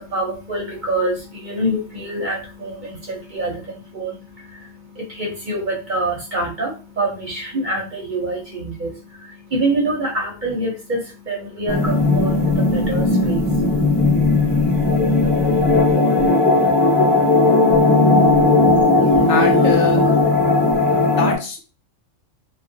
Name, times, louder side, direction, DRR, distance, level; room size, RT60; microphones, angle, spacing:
voice 1, 0.0-13.7, right 1 dB, 50° right, -2 dB, 0.6 m, -26 dB
sound 1, 11.7-21.4, left 2 dB, ahead, 0.6 m, -16 dB
voice 2, 19.0-20.1 21.2-21.6, left 4 dB, 70° left, 3 dB, 0.9 m, -24 dB
2.3 x 2.0 x 2.6 m, 0.31 s
omnidirectional pair, 1.3 m